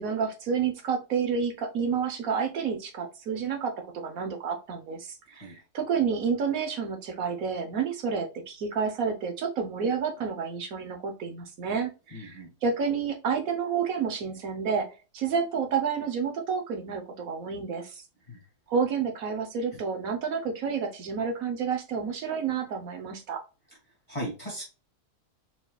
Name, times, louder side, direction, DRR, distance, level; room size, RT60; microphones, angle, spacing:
voice 1, 0.0-14.9 15.1-18.0 18.7-23.4, right 6 dB, 65° right, 5 dB, 1.3 m, -30 dB
voice 2, 5.3-5.6 12.1-12.5 18.3-18.4 24.1-24.6, equal, 20° left, -4 dB, 2.0 m, -37 dB
4.3 x 4.2 x 2.3 m, 0.31 s
omnidirectional pair, 1.7 m